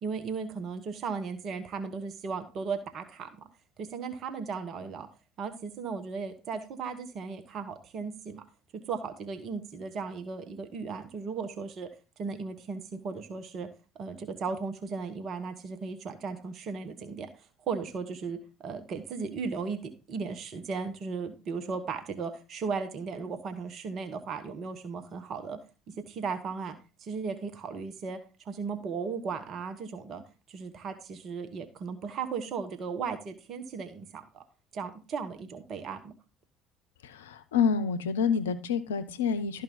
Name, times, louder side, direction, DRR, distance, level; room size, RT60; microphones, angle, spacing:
voice 1, 0.0-3.3 3.8-5.1 5.4-8.4 8.9-11.9 12.2-13.7 14.0-17.3 17.7-19.8 20.1-25.6 26.1-28.2 28.4-30.2 30.5-34.4 34.7-36.1, right 5 dB, 45° right, 8 dB, 1.3 m, -36 dB
voice 2, 37.0-39.6, left 6 dB, 75° left, 12 dB, 0.6 m, -28 dB
12.5 x 5.4 x 3.9 m, 0.31 s
figure-of-eight pair, 60°, 0 cm